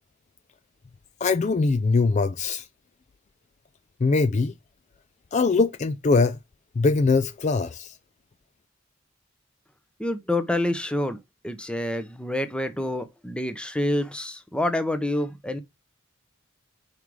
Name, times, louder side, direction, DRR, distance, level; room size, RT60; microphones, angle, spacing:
voice 1, 1.2-2.7 4.0-4.5 5.3-6.4 6.8-7.9, left 4 dB, 35° left, 0.3 m, -22 dB
voice 2, 10.0-11.2 11.4-15.6, left 1 dB, 5° left, 0.7 m, -27 dB
5.5 x 4.8 x 4.7 m
head